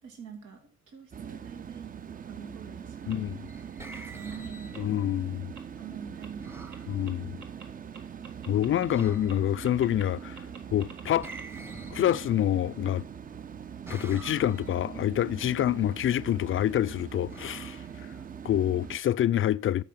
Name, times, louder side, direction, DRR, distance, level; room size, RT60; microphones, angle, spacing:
voice 1, 0.0-3.2 4.1-5.0 5.8-7.4 15.7-16.0, right 6 dB, 90° right, 2.3 m, -45 dB
sound 1, 1.1-19.0, right 8 dB, 30° right, 0.5 m, -42 dB
voice 2, 3.1-3.5 4.8-5.5 6.9-7.3 8.5-10.4 10.7-11.3 11.9-13.0 13.9-17.8 18.4-19.8, left 11 dB, 45° left, 0.4 m, -27 dB
sound 2, 3.1-3.2 3.9-4.0 4.7-4.8 5.6-5.7 6.2-6.3 6.7-6.8 7.1-7.2 7.4-7.7 7.9-9.0 9.3-9.4 9.7-10.0 10.4-11.5, right 5 dB, 70° right, 2.0 m, -47 dB
sound 3, 3.2-5.2 6.4-6.9 8.9-9.6 11.2-12.7 13.9-14.9 17.3-18.5, right 2 dB, 10° right, 0.9 m, -47 dB
12.5 x 5.6 x 5.8 m
cardioid pair, 90°, 30 cm